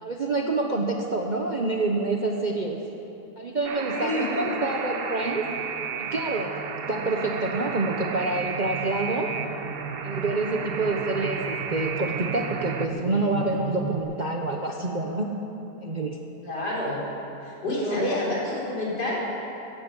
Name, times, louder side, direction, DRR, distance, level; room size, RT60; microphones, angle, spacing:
voice 1, 0.0-2.8 3.4-5.4 6.0-6.5 6.9-9.3 10.0-15.3 15.8-16.2 17.7-18.1, right 2 dB, 35° right, 1 dB, 0.8 m, -27 dB
Alarm, 3.6-12.9, right 6 dB, 55° right, 0.6 m, -33 dB
voice 2, 3.8-4.5 16.4-17.0 17.4-19.2, left 1 dB, 70° left, -5 dB, 4.2 m, -28 dB
sound 1, 5.2-14.0, right 6 dB, 85° right, 1.7 m, -37 dB
15.5 x 14.5 x 5.5 m, 2.9 s
omnidirectional pair, 1.8 m